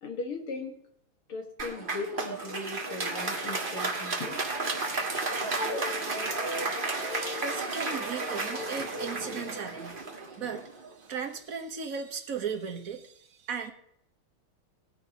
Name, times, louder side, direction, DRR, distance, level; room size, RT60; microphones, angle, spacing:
voice 1, 0.0-0.8 1.3-4.6, left 3 dB, 75° left, 3 dB, 2.8 m, -38 dB
Applause, 1.6-10.9, right 2 dB, 25° right, 1.6 m, -32 dB
voice 2, 7.4-10.0 10.4-10.7 11.0-13.7, right 6 dB, 45° right, 5 dB, 1.6 m, -36 dB
19.0 x 10.0 x 3.0 m, 0.71 s
omnidirectional pair, 2.4 m